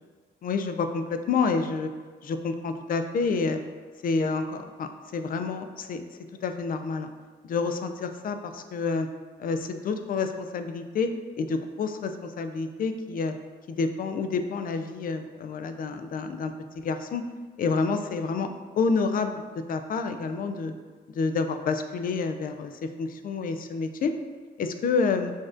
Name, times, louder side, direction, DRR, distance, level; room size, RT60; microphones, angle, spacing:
voice 1, 0.4-1.9 2.2-3.6 4.0-6.0 6.4-7.1 7.4-9.1 9.4-11.1 11.4-13.3 13.7-17.2 17.6-18.5 18.8-20.7 21.1-24.1 24.6-25.3, left 4 dB, 45° left, 7 dB, 0.4 m, -28 dB
6.2 x 2.4 x 2.5 m, 1.4 s
cardioid pair, 90°, 20 cm